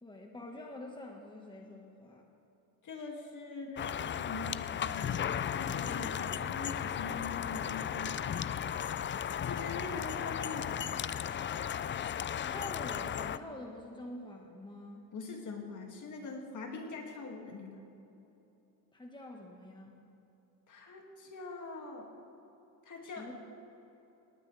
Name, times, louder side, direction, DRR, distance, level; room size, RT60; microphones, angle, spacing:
voice 1, 0.0-2.3 12.5-15.1 18.9-20.0 23.0-23.3, left 1 dB, 10° left, 1 dB, 1.6 m, -46 dB
voice 2, 2.8-5.1 5.5-8.3 9.4-11.1 15.1-17.8 20.7-22.1 22.9-23.3, left 3 dB, 50° left, 1 dB, 2.5 m, -43 dB
sound 1, 3.8-13.4, left 9 dB, 30° left, 0.4 m, -35 dB
19.0 x 18.5 x 3.4 m, 3.0 s
cardioid pair, 105°, 39 cm